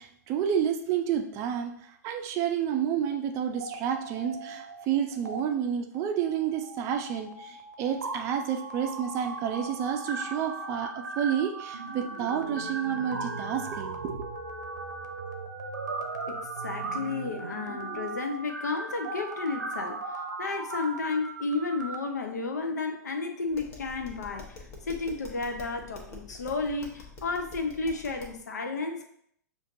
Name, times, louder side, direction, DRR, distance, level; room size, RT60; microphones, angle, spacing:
voice 1, 0.0-1.7 2.0-14.2, right 8 dB, 30° right, 4 dB, 0.5 m, -30 dB
sound 1, 3.5-4.8 5.1-5.4 5.9-21.9, right 3 dB, 75° right, 0.6 m, -38 dB
voice 2, 16.3-29.1, left 3 dB, 70° left, 5 dB, 0.6 m, -32 dB
Tap, 23.5-28.4, left 3 dB, 30° left, 1.0 m, -46 dB
6.3 x 2.5 x 2.6 m, 0.69 s
figure-of-eight pair, 105°, 10 cm